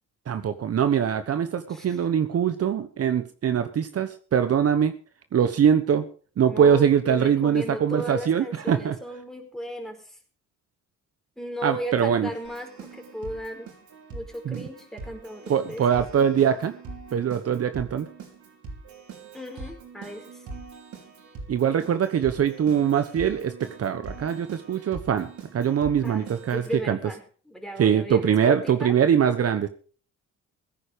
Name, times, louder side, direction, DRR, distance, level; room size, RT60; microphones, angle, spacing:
voice 1, 0.3-4.9 5.3-6.1 6.4-9.0 11.6-12.3 14.4-14.7 15.5-16.7 17.1-18.1 21.5-27.0 27.8-29.7, right 8 dB, 50° right, 10 dB, 1.2 m, -23 dB
voice 2, 6.5-10.0 11.4-13.7 14.1-16.0 19.3-20.3 26.0-26.2 26.5-27.2 27.5-29.0, equal, ahead, 3 dB, 4.6 m, -35 dB
Keyboard (musical), 12.4-26.8, right 4 dB, 75° right, 5.1 m, -43 dB
16.5 x 9.8 x 5.1 m, 0.41 s
cardioid pair, 90°, 30 cm